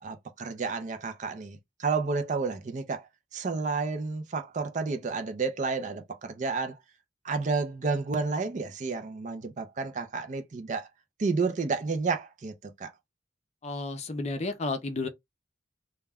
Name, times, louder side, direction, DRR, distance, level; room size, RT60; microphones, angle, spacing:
voice 1, 0.0-6.8 7.2-10.9 11.2-12.9, right 4 dB, 40° right, 0.4 m, -31 dB
voice 2, 13.6-15.1, left 3 dB, 35° left, 0.5 m, -32 dB
2.3 x 2.1 x 3.4 m
head